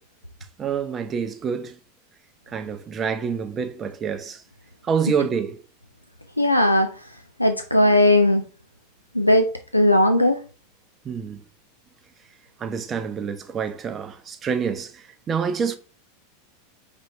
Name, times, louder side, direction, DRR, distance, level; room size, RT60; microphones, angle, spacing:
voice 1, 0.6-1.8 2.5-4.4 4.9-5.6 11.0-11.4 12.6-15.8, right 6 dB, 25° right, 0.6 m, -27 dB
voice 2, 6.4-6.9 7.4-8.4 9.1-10.4, left 1 dB, 90° left, 0.3 m, -18 dB
5.5 x 3.0 x 2.6 m
figure-of-eight pair, 85°, 0 cm